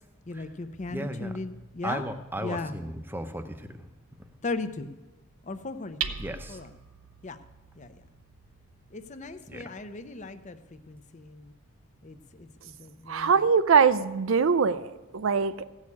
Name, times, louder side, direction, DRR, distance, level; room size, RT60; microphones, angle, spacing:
voice 1, 0.2-2.1 2.4-2.8 4.4-4.9 5.4-6.2 6.5-6.7 7.2-7.4 7.8-8.0 8.9-11.5 12.0-13.5, left 3 dB, 35° left, 11 dB, 0.6 m, -37 dB
voice 2, 0.9-1.3 1.8-3.9 6.2-6.6 9.5-9.6, right 1 dB, 10° right, 9 dB, 0.7 m, -35 dB
Hammer, 5.4-12.5, right 8 dB, 85° right, 0.9 m, -45 dB
voice 3, 13.1-15.7, right 6 dB, 65° right, 14 dB, 0.5 m, -22 dB
16.0 x 6.5 x 8.5 m, 1.1 s
head